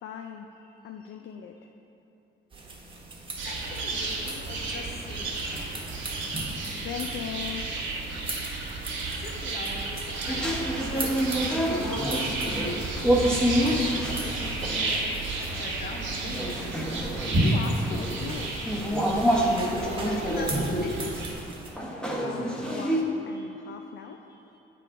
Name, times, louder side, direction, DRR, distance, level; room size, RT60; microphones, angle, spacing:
voice 1, 0.0-1.6 6.8-7.8 13.6-14.1 17.4-18.7 22.2-24.3, left 8 dB, 65° left, 4 dB, 0.4 m, -39 dB
sound 1, 2.5-21.7, right 2 dB, 25° right, 1.1 m, -40 dB
voice 2, 3.4-5.5 9.0-12.0 15.3-16.8 19.8-21.0 23.3-23.7 24.3-24.6, left 2 dB, 50° left, 1 dB, 1.0 m, -42 dB
sound 2, 3.4-21.3, right 2 dB, 70° right, 1.2 m, -32 dB
sound 3, 10.3-23.0, equal, 5° left, 0.9 m, -28 dB
8.3 x 3.8 x 4.6 m, 2.9 s
cardioid pair, 90°, 20 cm